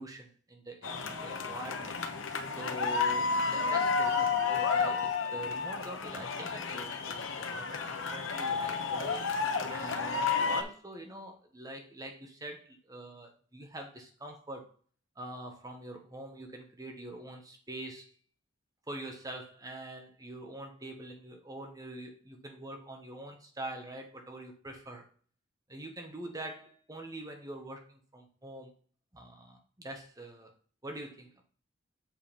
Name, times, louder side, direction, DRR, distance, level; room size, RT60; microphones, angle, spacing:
voice 1, 0.0-2.0 2.6-9.2 9.7-14.7 15.2-18.1 18.9-25.1 25.7-28.7 29.1-30.5 30.8-31.3, right 1 dB, 20° right, 3 dB, 1.2 m, -44 dB
sound 1, 0.8-10.6, left 5 dB, 85° left, 1.0 m, -31 dB
7.5 x 3.9 x 5.2 m, 0.42 s
head